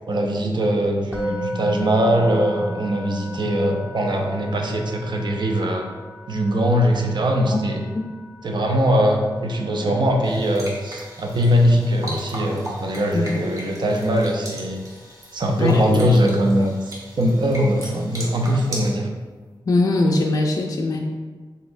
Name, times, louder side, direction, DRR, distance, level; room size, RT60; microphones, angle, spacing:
voice 1, 0.1-5.9 6.3-7.8 8.4-14.8 15.3-19.1, equal, 65° right, 2 dB, 0.5 m, -21 dB
Musical instrument, 1.1-12.2, equal, 20° right, 0.9 m, -36 dB
sound 1, 10.2-18.9, right 1 dB, 45° right, 1.0 m, -37 dB
voice 2, 15.6-16.0 19.7-21.0, left 2 dB, 45° left, 1 dB, 0.3 m, -21 dB
4.0 x 3.9 x 2.5 m, 1.4 s
wide cardioid pair, 90°, 8 cm